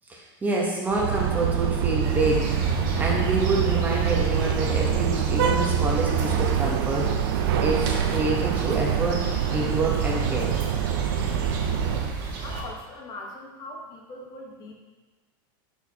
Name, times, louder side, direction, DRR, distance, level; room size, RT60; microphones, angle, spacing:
voice 1, 0.1-7.2 7.6-10.6, right 2 dB, 15° right, -2 dB, 0.9 m, -27 dB
sound 1, 0.9-12.1, right 8 dB, 80° right, 0.5 m, -25 dB
sound 2, 2.0-12.6, right 3 dB, 55° right, 1.3 m, -33 dB
voice 2, 12.4-14.7, left 2 dB, 30° left, 0 dB, 1.1 m, -40 dB
10.5 x 4.6 x 2.8 m, 1.2 s
supercardioid pair, 150°, 12 cm